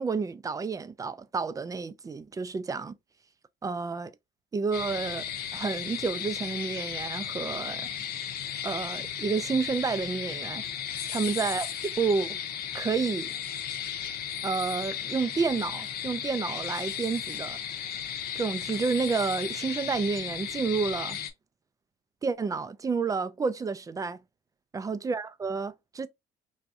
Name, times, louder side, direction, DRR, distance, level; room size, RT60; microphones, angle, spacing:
voice 1, 0.0-2.9 3.6-4.1 4.5-5.2 5.5-7.9 8.6-10.6 11.1-11.7 12.0-12.4 12.7-13.3 14.4-17.6 18.4-21.2 22.2-24.2 24.7-26.1, right 5 dB, 20° right, 0.3 m, -30 dB
sound 1, 4.7-21.3, left 9 dB, 65° left, 0.7 m, -35 dB
3.4 x 2.6 x 2.4 m
cardioid pair, 110°, 17 cm